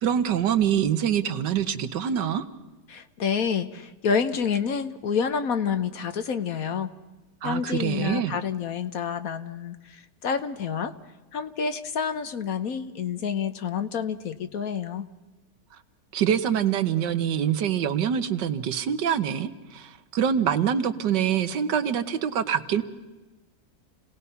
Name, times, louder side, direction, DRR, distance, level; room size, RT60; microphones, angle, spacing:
voice 1, 0.0-2.4 7.4-8.3 16.1-22.8, right 9 dB, 80° right, 10 dB, 1.7 m, -25 dB
voice 2, 2.9-6.9 7.4-10.9 11.3-15.1, left 6 dB, 60° left, 10 dB, 1.2 m, -28 dB
29.0 x 18.0 x 5.6 m, 1.2 s
omnidirectional pair, 1.9 m